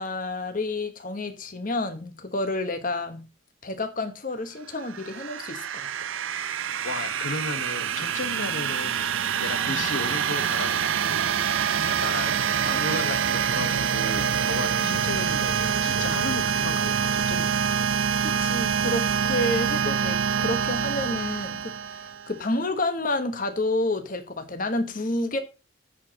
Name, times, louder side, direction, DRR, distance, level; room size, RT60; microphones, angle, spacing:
voice 1, 0.0-3.3 3.6-5.9 9.7-9.9 11.7-11.9 14.8-15.1 18.2-25.4, left 2 dB, 45° left, 1.2 m, -30 dB
sound 1, 4.7-22.4, right 7 dB, 85° right, 0.6 m, -26 dB
voice 2, 6.8-9.1 9.4-11.3 11.8-17.5, left 3 dB, 90° left, 1.2 m, -34 dB
14.5 x 5.1 x 2.9 m
head